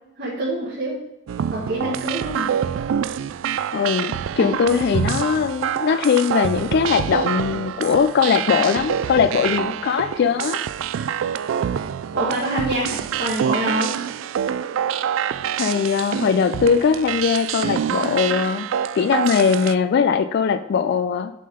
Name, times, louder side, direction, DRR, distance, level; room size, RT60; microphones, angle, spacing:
voice 1, 0.2-1.0 1.5-2.5 12.1-13.9, right 1 dB, 55° right, -5 dB, 1.5 m, -25 dB
sound 1, 1.3-19.7, right 8 dB, 85° right, 0.3 m, -26 dB
voice 2, 3.7-10.6 15.6-18.7 18.9-21.3, left 6 dB, 55° left, 8 dB, 0.3 m, -20 dB
7.6 x 3.7 x 5.0 m, 0.98 s
head